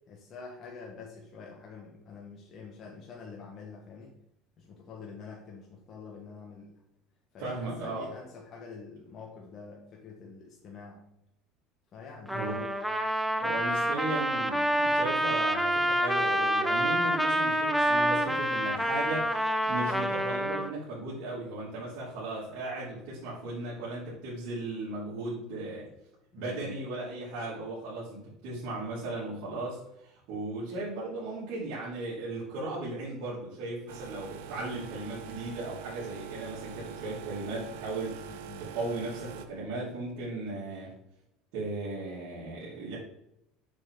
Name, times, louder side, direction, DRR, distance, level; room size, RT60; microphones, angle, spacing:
voice 1, 0.1-4.1 4.6-6.7 7.3-11.0 11.9-12.4 26.4-26.8 38.3-38.7, left 4 dB, 40° left, -2 dB, 1.5 m, -46 dB
voice 2, 7.4-8.1 12.3-12.7 13.4-25.9 26.3-40.9 41.5-43.0, right 2 dB, 65° right, -8 dB, 2.9 m, -36 dB
Trumpet, 12.3-20.7, equal, ahead, 0.7 m, -27 dB
sound 1, 33.9-39.5, right 10 dB, 90° right, 0.7 m, -44 dB
6.7 x 6.1 x 3.9 m, 0.80 s
supercardioid pair, 125°, 0 cm